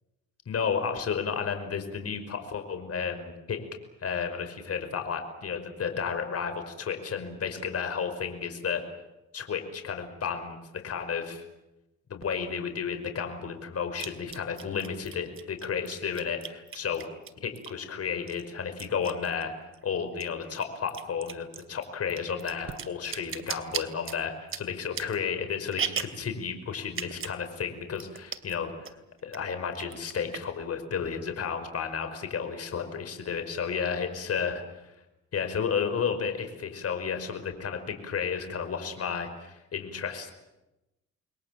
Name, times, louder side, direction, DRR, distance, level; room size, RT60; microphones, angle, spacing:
voice 1, 0.5-3.6 4.0-8.9 9.3-11.4 12.1-17.1 17.4-29.0 29.2-34.6 35.3-40.3, left 6 dB, 55° left, 8 dB, 5.4 m, -32 dB
sound 1, 12.2-12.3 14.0-17.9 18.3-19.8 20.1-26.3 26.9-27.4 27.7-27.8 28.0-28.6 28.9-29.4 29.7-30.6, right 7 dB, 45° right, 2.7 m, -37 dB
29.0 x 22.0 x 7.7 m, 0.95 s
cardioid pair, 90°, 30 cm